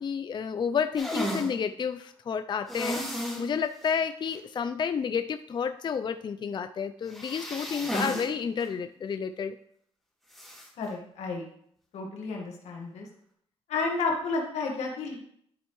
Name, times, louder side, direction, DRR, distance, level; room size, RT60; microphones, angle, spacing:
voice 1, 0.0-3.0 3.4-9.6, left 6 dB, 45° left, 9 dB, 0.4 m, -30 dB
sound 1, 1.0-1.5 2.7-3.5 3.8-3.9 4.3-4.4 7.1-8.3 8.6-8.7 10.3-10.7, equal, ahead, 3.0 m, -33 dB
voice 2, 10.8-11.4 11.9-13.1 13.7-15.2, left 3 dB, 85° left, 0 dB, 1.6 m, -31 dB
12.0 x 4.4 x 3.1 m, 0.67 s
cardioid pair, 70°, 11 cm